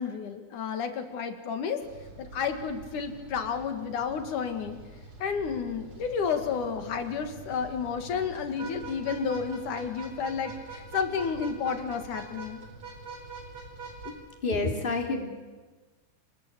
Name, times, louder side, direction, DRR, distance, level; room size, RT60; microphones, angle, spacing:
voice 1, 0.0-1.8 2.2-4.8 5.2-12.6, left 6 dB, 80° left, 7 dB, 3.5 m, -31 dB
sound 1, 1.8-14.1, right 3 dB, 45° right, 4.8 m, -45 dB
voice 2, 14.4-15.3, left 3 dB, 15° left, 3 dB, 2.9 m, -28 dB
28.0 x 20.5 x 8.7 m, 1.3 s
omnidirectional pair, 3.5 m